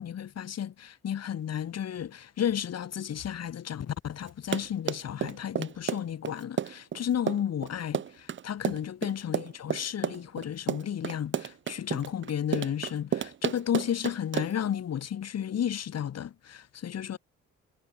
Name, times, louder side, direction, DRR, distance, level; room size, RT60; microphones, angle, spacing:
voice 1, 0.0-17.2, left 9 dB, 55° left, 2.5 m, -33 dB
Run, 4.3-14.7, right 9 dB, 40° right, 0.7 m, -32 dB
cardioid pair, 90°, 30 cm